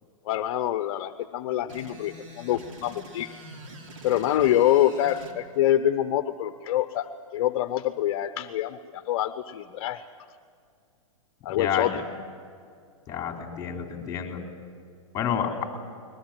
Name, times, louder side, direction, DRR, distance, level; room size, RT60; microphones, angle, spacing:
voice 1, 0.2-3.3 4.0-7.1 7.3-10.0 11.4-12.0, left 12 dB, 45° left, 11 dB, 0.9 m, -25 dB
sound 1, 1.7-5.4, right 1 dB, 65° right, 3.5 m, -45 dB
voice 2, 11.5-12.0 13.1-14.4 15.1-15.7, left 8 dB, 20° left, 3 dB, 4.0 m, -29 dB
21.5 x 21.0 x 9.1 m, 2.3 s
hypercardioid pair, 140°, 18 cm